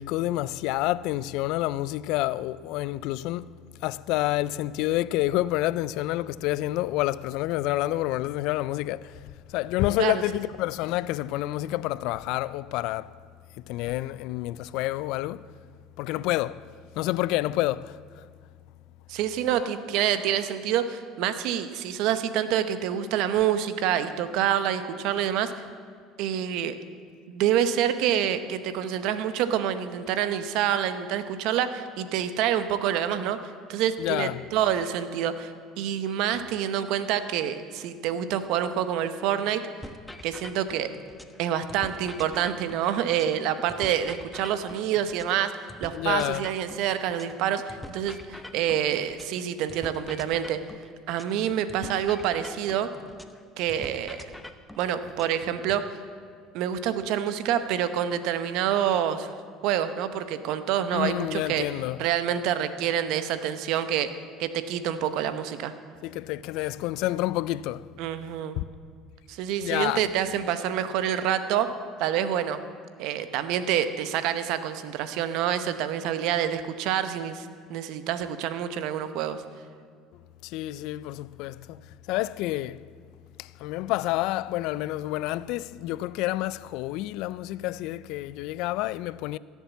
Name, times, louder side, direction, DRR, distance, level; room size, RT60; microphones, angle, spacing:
voice 1, 0.0-3.5 3.8-9.1 9.5-13.1 13.7-15.4 16.0-16.6 17.0-18.0 34.0-34.4 45.9-46.4 60.9-62.0 66.0-67.8 68.6-68.7 69.6-70.0 80.4-81.8 82.1-82.8 83.4-89.4, left 16 dB, 70° left, 0.3 m, -28 dB
voice 2, 19.1-25.5 26.2-26.8 27.3-33.4 33.7-35.5 35.8-39.6 40.2-40.9 41.4-50.6 51.1-52.9 53.6-54.3 54.8-55.8 56.5-59.3 59.6-61.7 62.0-64.1 64.4-65.7 68.0-68.6 69.3-71.7 72.0-72.6 73.0-79.4, right 10 dB, 70° right, 0.8 m, -27 dB
alien workshop, 39.8-41.4 41.7-45.4 45.7-49.4 49.7-53.4 53.7-55.8, left 1 dB, 5° left, 0.8 m, -44 dB
15.5 x 7.3 x 7.1 m
supercardioid pair, 95°, 0 cm